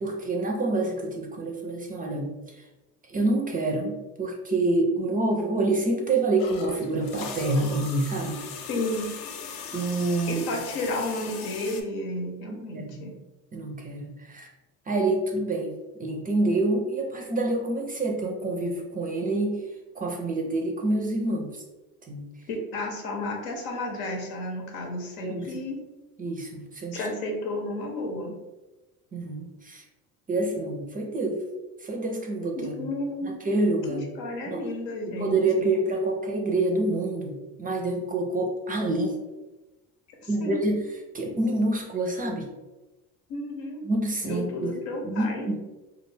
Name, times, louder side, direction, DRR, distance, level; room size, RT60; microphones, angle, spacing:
voice 1, 0.0-2.3 3.1-8.4 9.7-10.4 12.5-13.0 13.5-14.5 14.9-15.7 16.0-19.6 20.0-21.5 22.1-22.2 25.2-25.5 26.2-27.1 29.1-29.8 30.3-31.4 31.8-32.9 33.2-34.0 34.5-34.6 35.1-39.1 40.3-40.8 41.1-42.5 43.9-44.7 45.0-45.6, right 2 dB, 20° right, 1 dB, 0.4 m, -27 dB
sound 1, 6.4-11.8, left 6 dB, 55° left, 0.5 m, -38 dB
voice 2, 8.7-9.1 10.3-13.1 22.5-25.8 26.9-28.4 32.6-33.3 33.9-35.7 40.4-40.6 43.3-43.8 44.3-45.5, left 1 dB, 80° left, 1 dB, 0.8 m, -32 dB
2.3 x 2.2 x 3.2 m, 1.1 s
hypercardioid pair, 80°, 42 cm